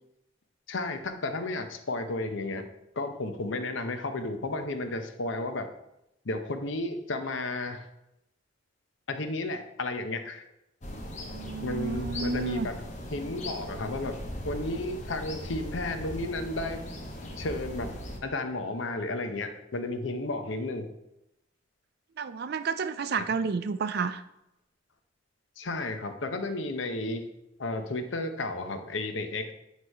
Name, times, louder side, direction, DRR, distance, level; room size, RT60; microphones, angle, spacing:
voice 1, 0.7-2.6 3.0-5.7 6.2-7.9 9.1-10.4 11.6-12.8 13.1-14.2 14.4-16.8 17.4-20.9 23.2-23.3 25.6-27.2 27.6-29.5, left 2 dB, 80° left, 7 dB, 0.7 m, -33 dB
sound 1, 10.8-18.2, equal, 40° left, 1.0 m, -39 dB
voice 2, 11.3-12.7 22.2-24.2, right 5 dB, 55° right, 11 dB, 0.4 m, -31 dB
8.1 x 3.1 x 5.3 m, 0.88 s
head